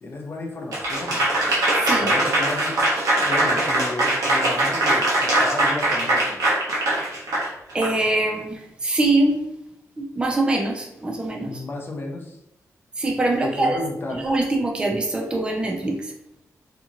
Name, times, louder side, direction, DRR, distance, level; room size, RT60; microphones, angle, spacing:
voice 1, 0.0-1.2 2.0-2.8 3.2-6.6 11.4-12.4 13.4-14.3, left 2 dB, 40° left, 1 dB, 0.5 m, -32 dB
Applause / Crowd, 0.7-7.9, right 1 dB, 80° right, 0.9 m, -21 dB
voice 2, 1.8-2.1 7.7-9.4 10.0-11.6 13.0-13.8 14.1-16.1, right 2 dB, 15° right, 1 dB, 0.4 m, -23 dB
2.8 x 2.5 x 2.5 m, 0.83 s
wide cardioid pair, 165°, 6 cm